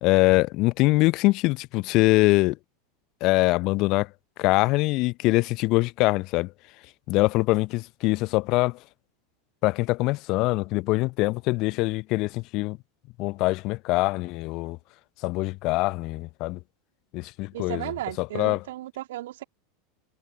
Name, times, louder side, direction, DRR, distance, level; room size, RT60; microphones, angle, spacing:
voice 1, 0.0-2.6 3.2-4.1 4.4-6.5 7.1-8.8 9.6-12.8 13.2-14.8 15.2-16.6 17.1-17.9 18.2-18.6, left 22 dB, 50° left, 0.8 m, -23 dB
voice 2, 17.5-19.4, right 15 dB, 65° right, 2.6 m, -35 dB
figure-of-eight pair, 85°, 0 cm